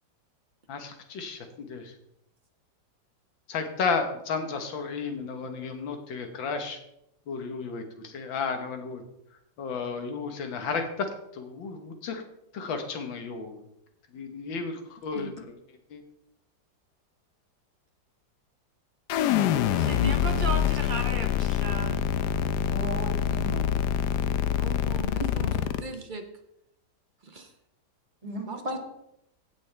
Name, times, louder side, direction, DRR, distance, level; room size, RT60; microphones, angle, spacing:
voice 1, 0.7-1.9 3.5-6.8 7.3-9.0 9.6-11.1 11.3-12.2 12.5-13.6 14.1-15.5 15.9-16.0, left 5 dB, 90° left, 6 dB, 2.0 m, -33 dB
sound 1, 19.1-25.8, left 9 dB, 75° left, 1.1 m, -26 dB
voice 2, 19.3-22.0 24.5-25.5 25.8-26.2 27.2-27.5 28.4-28.8, right 3 dB, 45° right, 5 dB, 0.6 m, -36 dB
voice 3, 22.6-23.7 25.4-25.7 28.2-28.8, equal, 20° right, -2 dB, 2.4 m, -36 dB
16.5 x 6.3 x 3.3 m, 0.80 s
omnidirectional pair, 2.0 m